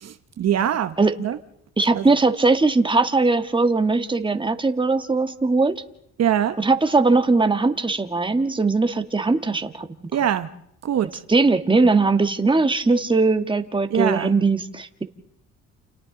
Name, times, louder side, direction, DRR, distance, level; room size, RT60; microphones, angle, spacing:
voice 1, 0.0-1.4 1.9-2.0 6.2-6.6 10.1-10.5 10.8-11.1 13.9-14.3, right 10 dB, 60° right, 11 dB, 1.0 m, -23 dB
voice 2, 1.8-5.8 6.6-9.9 11.3-15.0, right 3 dB, 15° right, 8 dB, 1.4 m, -20 dB
29.5 x 28.5 x 3.9 m, 0.76 s
cardioid pair, 90°, 30 cm